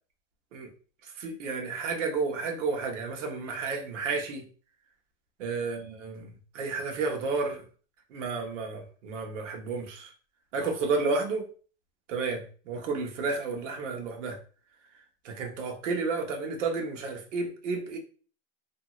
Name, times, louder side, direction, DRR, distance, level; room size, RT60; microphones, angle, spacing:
voice 1, 1.2-4.4 5.4-6.2 6.5-7.6 8.1-10.1 10.5-11.4 12.1-14.4 15.2-18.0, right 4 dB, 90° right, 3 dB, 1.0 m, -31 dB
2.9 x 2.7 x 2.3 m, 0.40 s
supercardioid pair, 180°, 36 cm